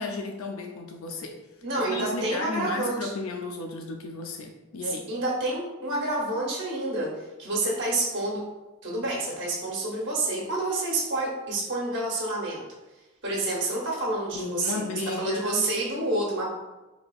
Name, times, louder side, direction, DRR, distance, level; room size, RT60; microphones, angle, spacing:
voice 1, 0.0-1.4 1.8-5.1 14.4-15.7, left 3 dB, 80° left, 2 dB, 0.4 m, -34 dB
voice 2, 1.6-3.1 4.8-7.1 7.4-8.4 8.8-12.6 13.2-14.8 15.2-16.5, right 2 dB, 55° right, -4 dB, 1.0 m, -28 dB
4.1 x 2.8 x 2.3 m, 1.1 s
head